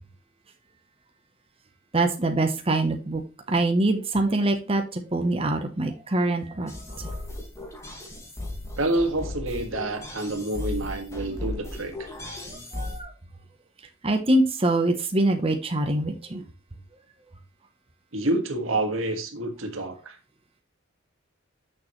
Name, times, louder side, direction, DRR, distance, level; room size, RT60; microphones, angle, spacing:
voice 1, 1.9-3.2 3.5-6.7 7.0-7.2 12.7-13.1 14.0-16.4, right 2 dB, 30° right, 0.9 m, -24 dB
sound 1, 6.7-13.0, left 2 dB, 15° left, 1.8 m, -36 dB
voice 2, 8.8-12.1 18.1-20.2, right 2 dB, 90° right, 1.7 m, -28 dB
9.2 x 6.4 x 3.1 m
head